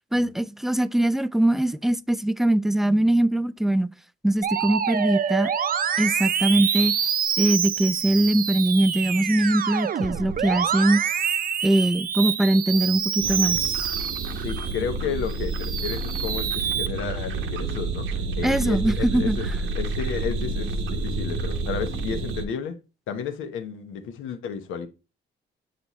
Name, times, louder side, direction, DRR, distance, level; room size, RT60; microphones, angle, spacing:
voice 1, 0.1-3.9 4.2-5.5 6.0-6.9 7.4-11.0 11.6-13.6 18.4-19.4, right 1 dB, ahead, 0.3 m, -22 dB
Musical instrument, 4.4-14.8 15.3-16.9, right 8 dB, 45° right, 0.6 m, -26 dB
sound 1, 13.2-22.4, right 3 dB, 80° right, 1.0 m, -29 dB
voice 2, 14.4-19.5 19.7-22.8 23.1-24.9, left 7 dB, 85° left, 1.0 m, -32 dB
7.8 x 4.2 x 3.0 m
cardioid pair, 90°, 20 cm